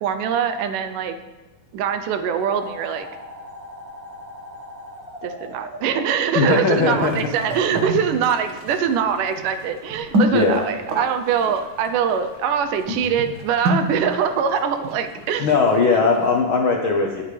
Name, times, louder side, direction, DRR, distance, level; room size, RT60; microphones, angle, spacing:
voice 1, 0.0-1.2 1.7-3.1 5.2-15.5, right 7 dB, 80° right, 9 dB, 2.2 m, -23 dB
sound 1, 2.4-7.8, equal, 10° right, 3.2 m, -39 dB
voice 2, 6.3-7.2 10.3-10.6 15.4-17.2, left 4 dB, 75° left, 1 dB, 1.2 m, -19 dB
sound 2, 7.0-16.4, right 1 dB, 45° right, 1.9 m, -29 dB
20.0 x 8.8 x 3.4 m, 1.2 s
omnidirectional pair, 3.9 m